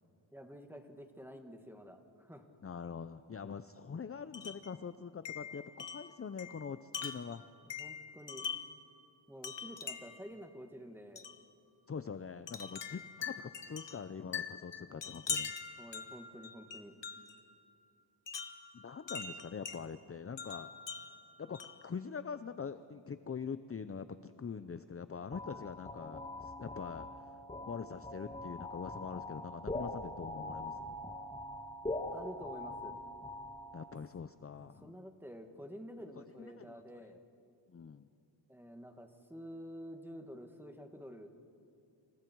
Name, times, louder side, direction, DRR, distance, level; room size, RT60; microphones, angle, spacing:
voice 1, 0.3-2.5 7.6-8.5 9.3-11.2 15.8-17.0 25.5-25.7 32.1-33.0 34.8-37.2 38.5-41.3, equal, 5° right, 4 dB, 2.1 m, -49 dB
voice 2, 2.6-7.4 11.9-15.5 18.7-20.7 21.4-27.3 27.7-31.0 33.7-34.9 36.4-37.1 37.7-38.1, left 6 dB, 30° left, 12 dB, 0.6 m, -44 dB
Wind chime, 4.3-4.7 5.3-8.8 9.4-10.3 11.2-11.4 12.5-17.4 18.3-19.8 20.4-21.9, left 6 dB, 65° left, 1.5 m, -43 dB
sound 1, 25.3-34.0, left 1 dB, 15° left, 2.0 m, -43 dB
29.5 x 28.0 x 4.7 m, 2.6 s
wide cardioid pair, 105°, 46 cm